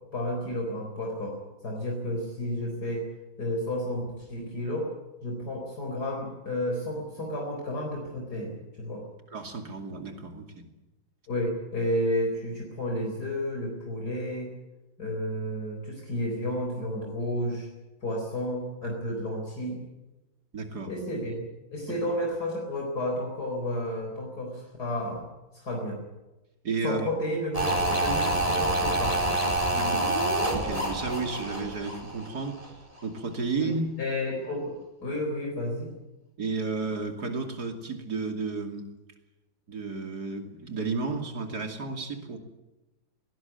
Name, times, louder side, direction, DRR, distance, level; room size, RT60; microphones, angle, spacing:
voice 1, 0.1-1.4 1.6-3.0 3.4-4.9 5.2-9.0 11.3-14.5 15.0-17.7 18.0-19.8 20.9-21.4 21.7-25.3 25.5-26.0 26.8-29.2 33.6-35.9, left 1 dB, 55° left, 0 dB, 4.5 m, -31 dB
voice 2, 9.3-10.7 20.5-20.9 21.9-22.0 26.6-27.1 29.7-30.1 30.5-32.6 33.0-33.8 36.4-38.9 39.7-42.4, right 4 dB, 55° right, 5 dB, 3.2 m, -32 dB
sound 1, 27.5-32.7 33.0-33.1, right 1 dB, 15° right, 4.4 m, -27 dB
20.5 x 17.5 x 9.3 m, 1.0 s
omnidirectional pair, 2.1 m